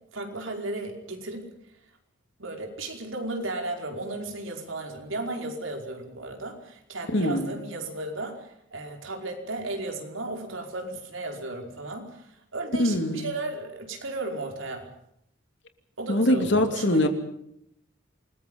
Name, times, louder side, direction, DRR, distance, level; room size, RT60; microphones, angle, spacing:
voice 1, 0.1-1.5 2.4-14.9 16.0-17.1, right 2 dB, 75° right, 3 dB, 5.0 m, -35 dB
voice 2, 7.1-7.6 12.8-13.3 16.1-17.1, left 1 dB, 60° left, 6 dB, 3.0 m, -23 dB
28.5 x 21.0 x 5.6 m, 0.75 s
head